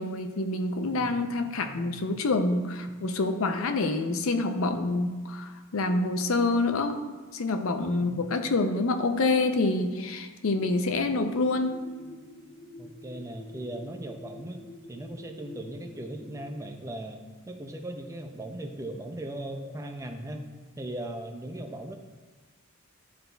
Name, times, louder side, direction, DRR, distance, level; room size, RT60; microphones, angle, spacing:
voice 1, 0.0-11.9, left 2 dB, 70° left, 7 dB, 0.5 m, -27 dB
voice 2, 0.8-2.2 8.0-8.2 12.8-17.2 17.5-20.5 20.8-21.9, right 1 dB, 15° right, 5 dB, 0.4 m, -39 dB
sound 1, 10.5-16.7, left 1 dB, 90° left, 1.3 m, -47 dB
11.0 x 3.9 x 2.2 m, 1.4 s
head